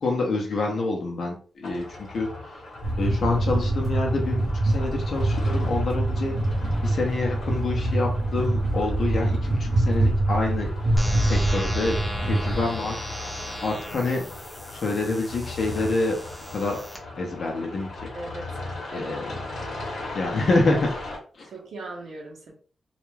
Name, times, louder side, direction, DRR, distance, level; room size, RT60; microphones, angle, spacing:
voice 1, 0.0-2.6 3.0-6.4 6.8-10.7 11.2-12.0 12.2-13.0 13.6-14.2 14.7-16.2 16.5-16.8 17.2-18.1 18.9-19.4 20.1-20.9 21.3-21.5, left 3 dB, 55° left, 0 dB, 0.6 m, -27 dB
sound 1, 1.6-21.2, left 2 dB, 75° left, 0.9 m, -38 dB
night train inside, 2.8-12.6, right 2 dB, 45° right, 0.6 m, -24 dB
sound 2, 11.0-17.0, equal, 10° left, 0.7 m, -36 dB
voice 2, 18.1-18.5 18.9-19.1 21.4-22.5, right 2 dB, 90° right, -1 dB, 0.7 m, -39 dB
2.3 x 2.1 x 3.1 m, 0.40 s
wide cardioid pair, 150°, 0 cm